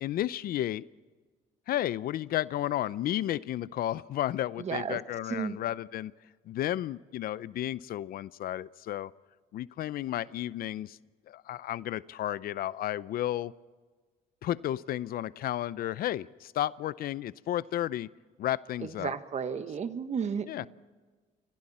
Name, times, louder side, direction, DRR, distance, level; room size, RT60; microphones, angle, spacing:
voice 1, 0.0-0.8 1.7-6.1 6.5-9.1 9.5-11.0 11.3-13.5 14.4-18.1 18.4-19.1 20.5-20.7, left 13 dB, 60° left, 18 dB, 0.6 m, -32 dB
voice 2, 4.6-5.0 5.3-5.6 18.8-20.7, right 6 dB, 40° right, 10 dB, 1.5 m, -33 dB
29.0 x 24.5 x 4.3 m, 1.4 s
cardioid pair, 110°, 17 cm